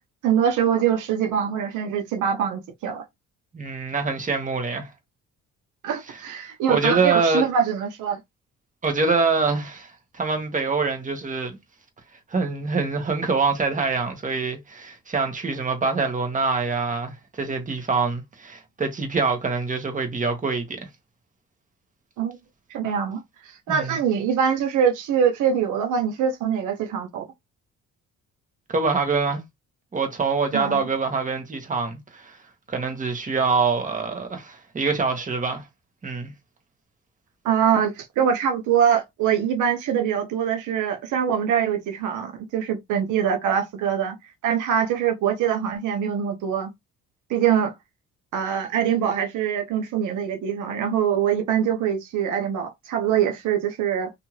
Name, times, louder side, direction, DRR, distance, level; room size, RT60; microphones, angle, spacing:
voice 1, 0.2-3.0 5.8-8.2 22.2-22.4 22.7-27.3 30.5-30.8 37.4-44.2 44.4-46.7 47.3-47.7 48.3-54.1, right 8 dB, 80° right, 0.7 m, -23 dB
voice 2, 3.5-4.9 6.7-7.4 8.8-11.6 12.3-20.9 23.7-24.0 28.7-29.4 29.9-32.4 32.7-35.6 36.0-36.3, right 4 dB, 25° right, 1.0 m, -25 dB
2.6 x 2.4 x 3.0 m
cardioid pair, 90°, 30 cm